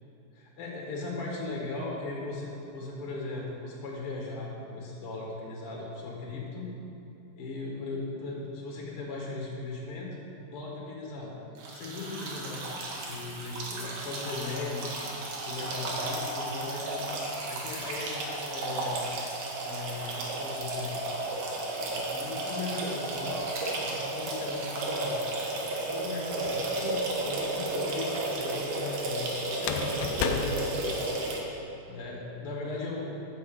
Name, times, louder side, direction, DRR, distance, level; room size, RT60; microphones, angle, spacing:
voice 1, 0.3-6.7 7.3-10.2 10.5-11.3 11.7-14.9 15.4-17.0 17.5-19.0 19.6-21.0 21.9-23.5 23.8-25.2 25.9-31.0 31.9-33.1, left 3 dB, 50° left, -3 dB, 2.1 m, -38 dB
sound 1, 11.6-31.4, right 2 dB, 70° right, 2.8 m, -33 dB
sound 2, 26.5-27.1 29.5-31.5, left 6 dB, 80° left, 1.9 m, -34 dB
14.5 x 6.0 x 5.3 m, 2.8 s
omnidirectional pair, 4.0 m